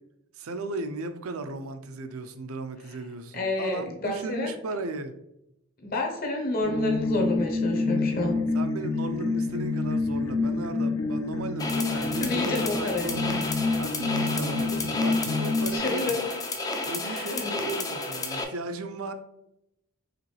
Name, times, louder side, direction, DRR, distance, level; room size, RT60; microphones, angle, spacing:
voice 1, 0.3-5.1 8.5-16.2 16.9-19.1, right 3 dB, 85° right, 0.5 m, -36 dB
voice 2, 3.3-4.5 5.8-8.4 11.9-13.5 15.7-16.2 17.0-17.5, left 2 dB, 45° left, 0.9 m, -30 dB
sound 1, 6.6-15.8, left 3 dB, 85° left, 0.9 m, -28 dB
sound 2, 11.6-18.4, left 2 dB, 15° left, 0.4 m, -32 dB
5.0 x 3.1 x 3.2 m
head